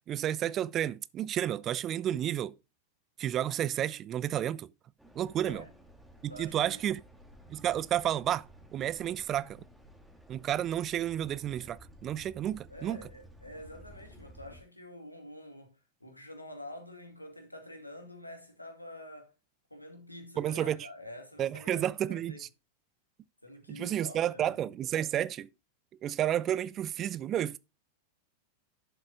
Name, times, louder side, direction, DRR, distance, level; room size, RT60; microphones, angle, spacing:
voice 1, 0.1-2.5 3.2-4.7 5.2-5.6 6.2-7.0 7.5-9.6 10.3-13.0 20.4-20.8 21.4-22.3 23.7-25.5 26.0-27.6, right 11 dB, 30° right, 0.5 m, -31 dB
sound 1, 5.0-14.6, equal, 5° right, 2.6 m, -54 dB
voice 2, 5.4-5.7 6.3-6.9 12.7-15.7 16.0-19.3 19.7-22.4 23.4-24.8, left 1 dB, 85° left, 2.2 m, -47 dB
11.5 x 7.6 x 2.5 m
figure-of-eight pair, 90°, 0 cm